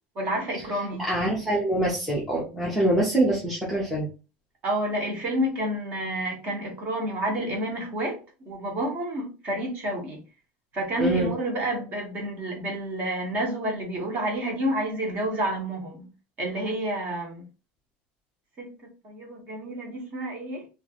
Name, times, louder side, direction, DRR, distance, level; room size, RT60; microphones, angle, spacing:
voice 1, 0.1-1.1 4.6-10.2 10.7-16.1 16.4-17.4 18.6-18.7 19.0-20.7, right 1 dB, 25° right, 1.0 m, -29 dB
voice 2, 1.1-4.1 11.0-11.3, right 1 dB, ahead, 0.6 m, -24 dB
2.9 x 2.5 x 2.8 m
cardioid pair, 175°, 6 cm